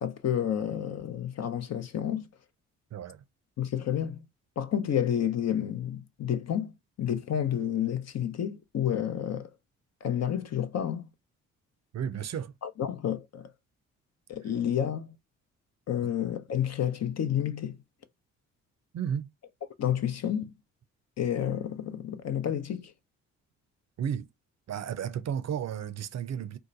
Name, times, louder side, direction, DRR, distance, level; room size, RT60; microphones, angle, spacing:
voice 1, 0.0-2.3 3.6-4.3 4.6-9.5 10.0-11.1 12.6-13.5 14.3-15.1 15.9-17.8 19.8-20.5 21.2-22.9, left 9 dB, 45° left, 0.7 m, -30 dB
voice 2, 2.9-3.2 11.9-12.5 18.9-19.3 24.0-24.3 24.7-26.6, right 8 dB, 45° right, 0.6 m, -33 dB
2.8 x 2.2 x 3.9 m
hypercardioid pair, 45°, 37 cm